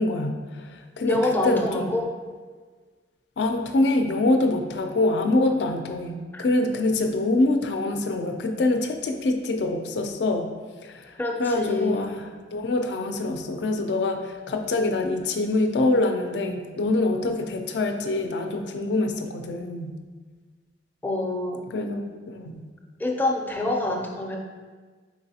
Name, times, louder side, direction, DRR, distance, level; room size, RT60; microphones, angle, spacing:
voice 1, 0.0-1.9 3.4-10.5 10.8-11.1 11.4-19.9 21.7-22.7, left 2 dB, 70° left, 5 dB, 0.4 m, -25 dB
voice 2, 1.1-2.1 6.3-6.5 11.2-12.2 21.0-21.6 23.0-24.4, left 2 dB, 10° left, 1 dB, 0.4 m, -26 dB
4.7 x 3.9 x 2.8 m, 1.5 s
head